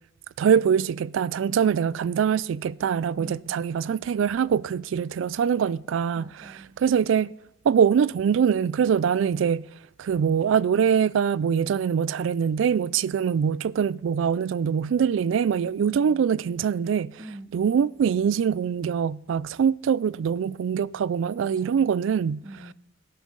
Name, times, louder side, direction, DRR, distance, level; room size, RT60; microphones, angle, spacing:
voice 1, 0.4-6.2 6.8-7.3 7.6-9.6 10.0-17.1 17.5-22.4, right 7 dB, 70° right, 0.3 m, -23 dB
voice 2, 3.1-3.7 6.1-6.8 15.8-16.3 17.2-17.7 21.4-21.9 22.4-22.7, right 1 dB, 20° right, 0.7 m, -44 dB
12.5 x 8.3 x 3.9 m
head